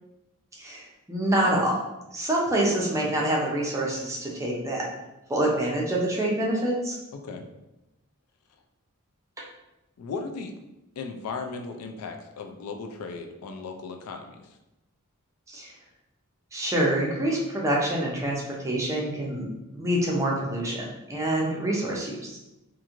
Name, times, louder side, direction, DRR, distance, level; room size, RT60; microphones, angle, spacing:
voice 1, 0.6-1.7 2.1-4.8 5.3-7.0 15.5-15.7 16.5-22.4, right 1 dB, 15° right, -3 dB, 0.5 m, -26 dB
voice 2, 10.0-10.5 11.0-14.4, left 4 dB, 85° left, 4 dB, 0.4 m, -36 dB
2.9 x 2.5 x 2.4 m, 0.95 s
head